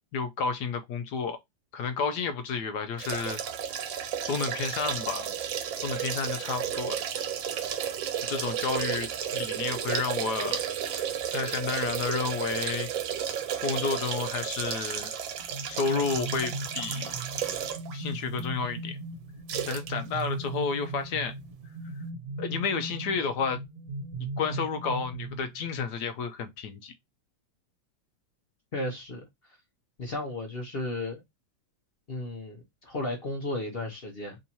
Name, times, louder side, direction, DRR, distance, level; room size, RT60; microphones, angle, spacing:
voice 1, 0.1-1.4 1.7-3.4 4.2-5.3 5.8-7.0 8.2-10.6 11.3-12.9 13.6-15.1 15.7-17.1 17.9-19.0 19.7-21.3 22.4-23.6 24.4-26.9, left 5 dB, 70° left, 1.0 m, -31 dB
sound 1, 3.0-18.0 18.4-18.5 19.5-19.9 20.2-20.3, right 9 dB, 80° right, 1.5 m, -33 dB
sound 2, 15.4-25.9, right 2 dB, 45° right, 1.7 m, -38 dB
voice 2, 28.7-29.3 30.0-31.2 32.1-34.4, left 2 dB, 45° left, 0.8 m, -34 dB
3.6 x 2.7 x 4.2 m
omnidirectional pair, 2.1 m